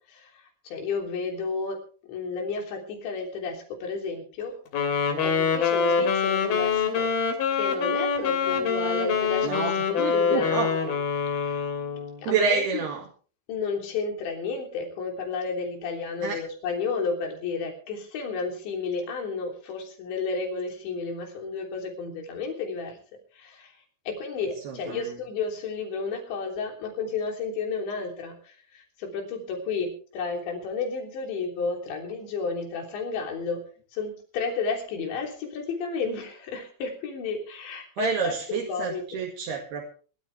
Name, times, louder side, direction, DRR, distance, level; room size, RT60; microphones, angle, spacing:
voice 1, 0.7-1.8 2.1-4.5 5.2-7.1 7.5-10.9 11.3-11.6 12.2-12.8 13.5-23.0 23.3-23.8 24.1-33.6 33.9-39.2, left 4 dB, 80° left, 2 dB, 5.7 m, -32 dB
Wind instrument woodwind instrument, 4.7-12.2, left 6 dB, 55° left, 4.4 m, -25 dB
voice 2, 9.4-10.7 12.3-13.1 16.2-16.4 24.7-25.1 38.0-39.9, right 6 dB, 65° right, 0 dB, 4.0 m, -29 dB
23.5 x 13.0 x 3.5 m, 0.40 s
omnidirectional pair, 5.1 m